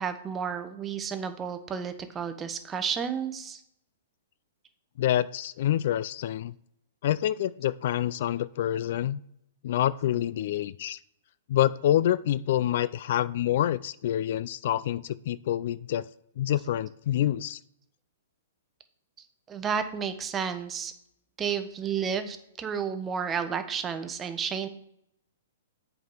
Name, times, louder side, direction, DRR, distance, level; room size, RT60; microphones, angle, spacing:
voice 1, 0.0-3.6 19.5-20.9 21.4-24.7, right 7 dB, 20° right, 9 dB, 1.0 m, -31 dB
voice 2, 5.0-6.5 7.0-9.2 9.6-11.0 11.5-16.1 16.4-17.6, left 12 dB, 60° left, 17 dB, 0.4 m, -27 dB
7.8 x 4.8 x 5.5 m, 0.75 s
hypercardioid pair, 130°, 0 cm